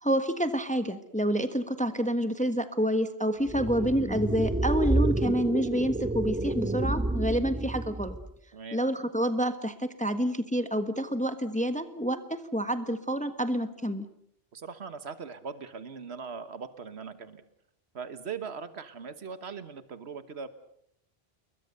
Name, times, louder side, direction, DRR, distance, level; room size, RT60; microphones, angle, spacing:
voice 1, 0.0-8.2 8.7-14.1, equal, 5° left, 9 dB, 1.4 m, -28 dB
sound 1, 3.5-8.3, right 2 dB, 10° right, 0.9 m, -29 dB
voice 2, 14.5-17.4 17.9-20.5, right 5 dB, 80° right, 11 dB, 1.6 m, -40 dB
29.5 x 22.0 x 6.7 m, 0.70 s
omnidirectional pair, 1.1 m